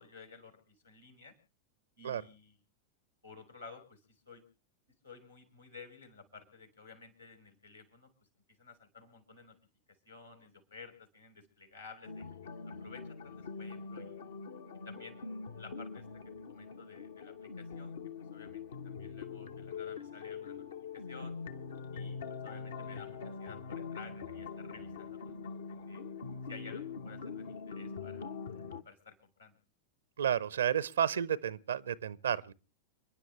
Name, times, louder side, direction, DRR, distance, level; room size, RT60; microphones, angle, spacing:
voice 1, 0.0-1.3 2.0-2.6 3.2-4.4 5.0-8.1 8.6-9.6 10.0-12.3 12.6-14.2 14.8-16.1 16.5-18.0 18.3-20.6 20.9-21.3 21.9-26.0 26.4-28.3 28.8-29.6, left 4 dB, 85° left, 4.9 m, -54 dB
sound 1, 12.1-28.8, left 5 dB, 65° left, 1.0 m, -43 dB
voice 2, 30.2-32.5, right 9 dB, 65° right, 0.6 m, -31 dB
30.0 x 10.5 x 3.2 m
figure-of-eight pair, 90°, 0 cm